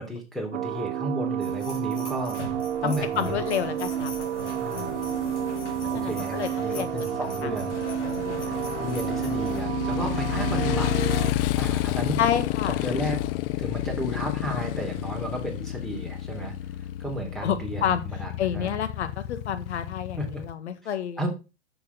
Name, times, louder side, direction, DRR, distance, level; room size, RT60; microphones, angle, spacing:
voice 1, 0.0-2.4 2.8-3.4 4.6-5.1 5.9-7.8 8.8-10.9 11.2-11.3 11.6-12.2 12.7-13.2 13.6-16.5 17.0-18.7 20.2-20.4 21.2-21.3, equal, ahead, 1 dB, 3.2 m, -33 dB
sound 1, 0.5-11.3, right 11 dB, 70° right, 0.9 m, -30 dB
sound 2, 1.4-9.6, left 4 dB, 90° left, 3.6 m, -41 dB
voice 2, 2.8-4.3 4.7-5.0 5.9-7.1 7.4-7.5 8.0-8.9 12.2-12.8 17.4-18.0 18.4-21.2, left 8 dB, 75° left, 11 dB, 1.5 m, -30 dB
Motorcycle, 4.8-20.5, left 14 dB, 55° left, 0.6 m, -31 dB
7.0 x 6.8 x 5.4 m, 0.30 s
hypercardioid pair, 120°, 34 cm